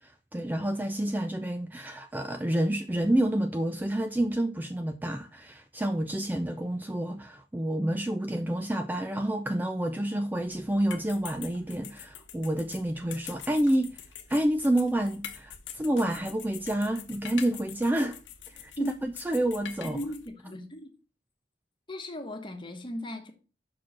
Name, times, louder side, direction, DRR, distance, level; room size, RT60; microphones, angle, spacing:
voice 1, 0.0-14.0 14.3-18.2 18.5-20.0, right 1 dB, 10° right, 0.4 m, -29 dB
sound 1, 10.3-20.3, left 9 dB, 85° left, 1.0 m, -45 dB
voice 2, 19.8-20.9 21.9-23.3, left 1 dB, 25° left, 1.2 m, -37 dB
6.0 x 4.6 x 5.9 m
head